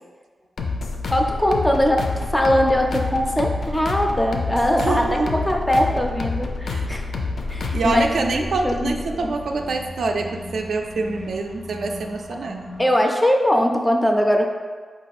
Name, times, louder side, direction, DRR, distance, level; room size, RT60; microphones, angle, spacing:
sound 1, 0.6-8.1, left 3 dB, 70° left, 0.4 m, -28 dB
voice 1, 1.1-7.1 7.5-9.3 12.8-14.5, equal, 5° left, 2 dB, 0.3 m, -21 dB
voice 2, 4.8-5.4 6.7-6.9 7.7-12.7, right 3 dB, 65° right, 3 dB, 0.3 m, -25 dB
sound 2, 7.1-12.9, left 1 dB, 90° left, 0.8 m, -36 dB
4.9 x 2.3 x 4.1 m, 1.5 s
wide cardioid pair, 175°, 0 cm